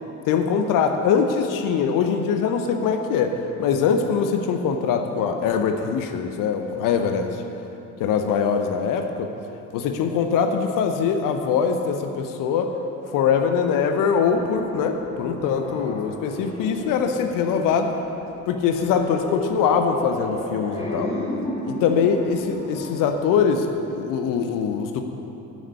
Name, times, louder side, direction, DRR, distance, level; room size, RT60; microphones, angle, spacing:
voice 1, 0.2-7.4 8.0-9.3 9.7-12.7 13.1-17.9 18.5-21.1 21.6-25.0, left 6 dB, 50° left, 6 dB, 0.9 m, -22 dB
sound 1, 14.3-24.0, left 1 dB, 15° left, 2.7 m, -34 dB
10.5 x 7.4 x 8.2 m, 3.0 s
figure-of-eight pair, 55°, 43 cm